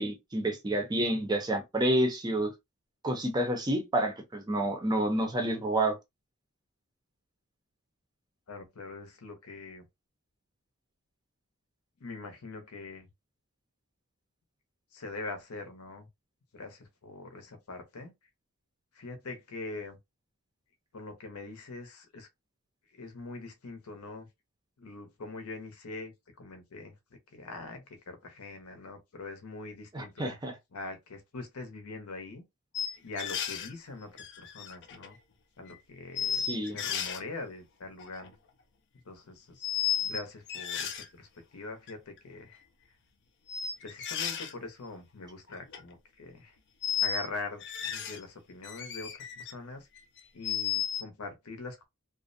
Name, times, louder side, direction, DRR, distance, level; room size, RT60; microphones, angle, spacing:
voice 1, 0.0-2.5 3.0-6.0 29.9-30.5 36.3-36.8, right 1 dB, 20° right, 0.5 m, -29 dB
voice 2, 8.5-9.8 12.0-13.1 14.9-16.1 16.5-18.1 18.9-20.0 20.9-22.3 22.9-24.3 24.8-26.1 26.4-26.9 27.3-30.4 30.7-32.4 33.0-35.2 35.6-36.4 36.7-38.3 39.1-42.6 43.8-46.5 47.0-49.9 50.3-51.8, left 3 dB, 80° left, 0.7 m, -43 dB
sound 1, 32.7-33.7 34.2-35.2 35.7-35.8 36.2-37.2 38.0-38.3 39.6-40.2 40.5-41.1 41.9-42.0 43.5-44.5 45.5-45.8 46.8-47.3 47.6-48.2 48.6-49.5 50.0-51.0, left 9 dB, 50° left, 0.4 m, -33 dB
2.4 x 2.0 x 2.5 m
head